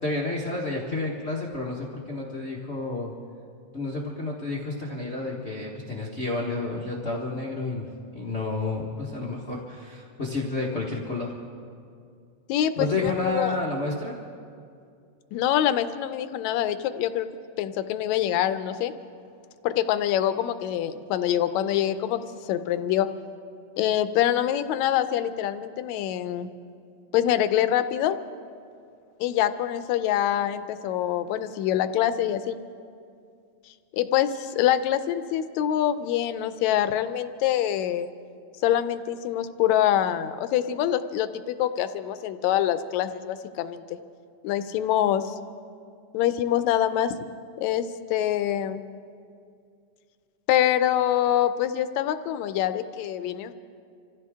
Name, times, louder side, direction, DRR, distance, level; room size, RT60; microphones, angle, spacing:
voice 1, 0.0-3.1 3.7-11.3 12.8-14.2, left 3 dB, 65° left, -3 dB, 0.6 m, -30 dB
voice 2, 12.5-13.6 15.3-17.3 17.6-18.9 19.6-23.1 23.8-26.5 27.1-28.2 29.2-32.6 33.9-38.1 38.6-44.0 44.4-45.4 46.1-47.2 47.6-48.8 50.5-53.5, left 11 dB, 80° left, 11 dB, 1.9 m, -25 dB
26.5 x 15.0 x 3.6 m, 2.3 s
omnidirectional pair, 3.4 m